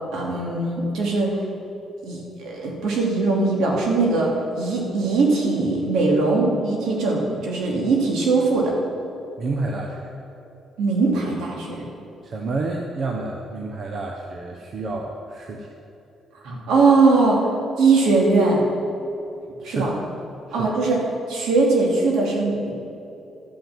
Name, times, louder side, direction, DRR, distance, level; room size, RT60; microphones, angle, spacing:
voice 1, 0.1-1.3 2.0-4.3 4.6-8.7 10.8-11.8 16.4-17.4 17.8-18.6 19.6-19.9 20.5-22.7, right 3 dB, 80° right, -2 dB, 2.6 m, -20 dB
voice 2, 9.4-10.1 12.2-15.7 19.6-20.0 20.5-20.9, right 3 dB, 55° right, 1 dB, 1.0 m, -29 dB
12.0 x 5.9 x 7.5 m, 2.8 s
cardioid pair, 90°, 0 cm